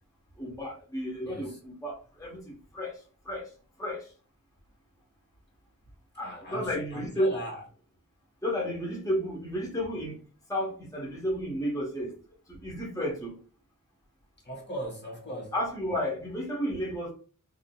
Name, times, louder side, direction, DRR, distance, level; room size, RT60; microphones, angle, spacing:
voice 1, 0.4-3.0 3.3-3.5 3.8-4.1 6.2-7.3 8.4-10.2 10.5-12.1 12.5-13.4 15.5-17.1, equal, 10° left, 1.0 m, -32 dB
voice 2, 1.2-1.6 6.2-7.6 14.4-15.5, equal, 30° left, 1.2 m, -39 dB
3.5 x 2.6 x 2.2 m
wide cardioid pair, 55°, 33 cm